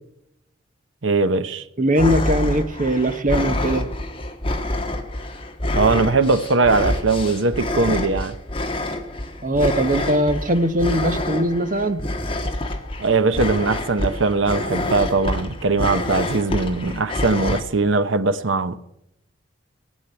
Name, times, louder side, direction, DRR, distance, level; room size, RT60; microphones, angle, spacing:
voice 1, 1.0-1.6 5.7-8.3 13.0-18.8, right 3 dB, 70° right, 0.8 m, -20 dB
voice 2, 1.8-3.9 9.4-12.0, right 1 dB, 40° right, 1.0 m, -20 dB
sound 1, 1.9-17.6, left 1 dB, 25° left, 1.3 m, -27 dB
16.5 x 7.4 x 9.4 m
head